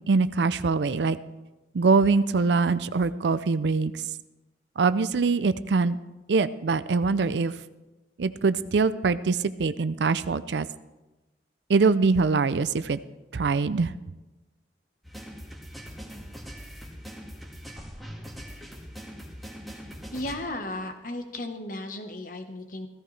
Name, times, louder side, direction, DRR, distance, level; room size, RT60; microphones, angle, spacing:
voice 1, 0.1-1.2 1.7-4.0 4.8-6.0 6.3-7.5 8.2-10.7 11.7-13.0 13.3-13.9, right 4 dB, 80° right, 14 dB, 0.5 m, -23 dB
sound 1, 15.0-20.4, equal, ahead, 1.7 m, -42 dB
voice 2, 20.1-22.9, left 1 dB, 50° left, 6 dB, 1.2 m, -35 dB
15.5 x 14.0 x 3.3 m, 1.1 s
head